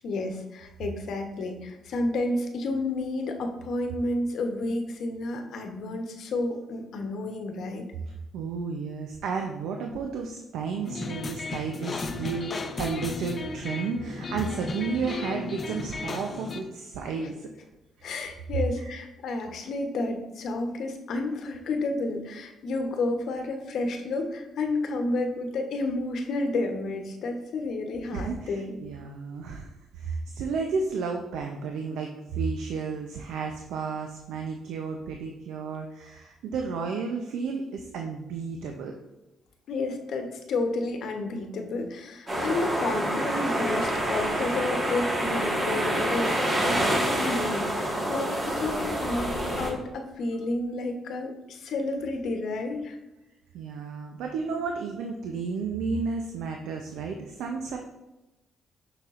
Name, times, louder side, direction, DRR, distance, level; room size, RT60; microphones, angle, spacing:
voice 1, 0.0-7.9 17.2-17.3 18.0-28.8 39.7-49.3 49.6-53.0, left 2 dB, 70° left, 4 dB, 0.9 m, -31 dB
voice 2, 8.1-17.4 18.8-19.0 28.1-38.9 53.5-57.8, right 5 dB, 85° right, 3 dB, 0.6 m, -32 dB
sound 1, 10.9-16.6, left 4 dB, 35° left, 0.6 m, -35 dB
sound 2, 42.3-49.7, right 1 dB, 30° right, 1.7 m, -27 dB
6.7 x 5.9 x 2.5 m, 1.0 s
cardioid pair, 90°, 0 cm